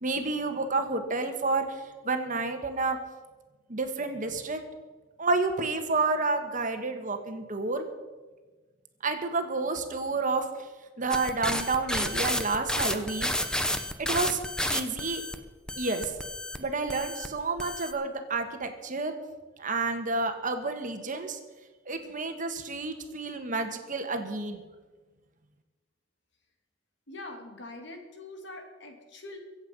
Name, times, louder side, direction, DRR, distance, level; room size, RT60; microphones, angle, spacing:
voice 1, 0.0-3.0 3.7-4.6 5.2-7.8 9.0-10.4 11.0-13.3 14.0-15.2 15.8-16.1 16.6-19.1 19.6-21.4 21.9-24.6, right 3 dB, 45° right, 6 dB, 1.5 m, -30 dB
sound 1, 11.1-15.3 15.7-16.6 16.9-17.3 17.6-17.9, left 1 dB, 5° left, 0.9 m, -31 dB
voice 2, 27.1-29.4, left 2 dB, 65° left, 3 dB, 2.7 m, -43 dB
23.5 x 8.1 x 5.4 m, 1.3 s
head